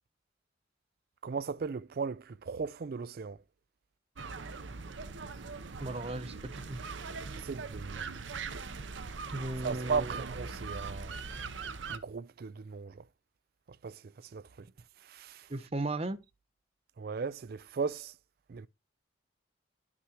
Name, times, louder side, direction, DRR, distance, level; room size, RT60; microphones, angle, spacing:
voice 1, 1.2-3.4 7.4-8.1 9.6-11.2 11.9-13.0 13.7-14.7 15.0-15.5 17.0-18.1 18.5-18.7, right 5 dB, 50° right, 0.4 m, -37 dB
sound 1, 4.2-12.0, right 4 dB, 75° right, 0.7 m, -41 dB
voice 2, 5.8-6.8 9.3-10.2 15.5-16.2, right 2 dB, 30° right, 0.8 m, -36 dB
11.5 x 6.0 x 2.9 m
head